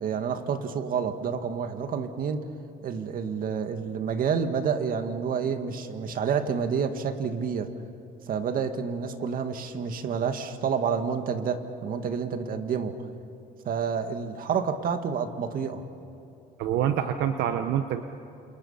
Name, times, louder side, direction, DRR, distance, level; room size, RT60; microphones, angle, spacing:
voice 1, 0.0-2.4 2.8-7.7 8.3-12.9 13.6-15.8, right 6 dB, 55° right, 7 dB, 1.9 m, -29 dB
voice 2, 16.6-18.0, right 9 dB, 80° right, 8 dB, 1.0 m, -26 dB
29.5 x 28.0 x 5.7 m, 2.7 s
cardioid pair, 110°, 17 cm